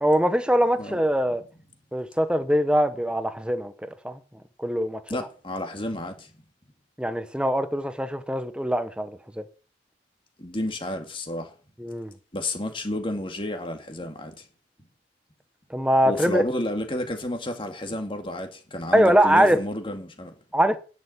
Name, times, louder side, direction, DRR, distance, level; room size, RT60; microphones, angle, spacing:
voice 1, 0.0-1.4 1.9-4.2 4.6-5.0 7.0-9.4 11.8-12.1 15.7-16.4 18.9-19.6 20.5-20.8, equal, 5° right, 1.0 m, -22 dB
voice 2, 5.1-6.3 10.4-11.5 12.3-14.4 16.0-20.3, left 1 dB, 30° left, 2.2 m, -31 dB
10.5 x 6.8 x 8.9 m
head